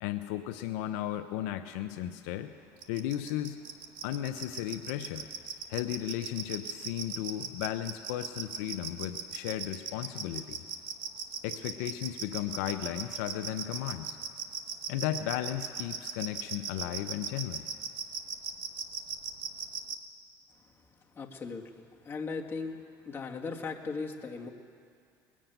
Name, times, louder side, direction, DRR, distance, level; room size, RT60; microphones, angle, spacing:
voice 1, 0.0-2.5 2.9-3.6 4.0-5.3 5.7-10.6 11.4-14.2 14.9-17.7, left 12 dB, 80° left, 8 dB, 0.6 m, -35 dB
sound 1, 2.8-20.0, right 8 dB, 70° right, 1.0 m, -37 dB
voice 2, 21.2-22.8 23.1-24.5, left 4 dB, 25° left, 0 dB, 1.7 m, -38 dB
21.5 x 7.5 x 9.1 m, 2.3 s
supercardioid pair, 95°, 9 cm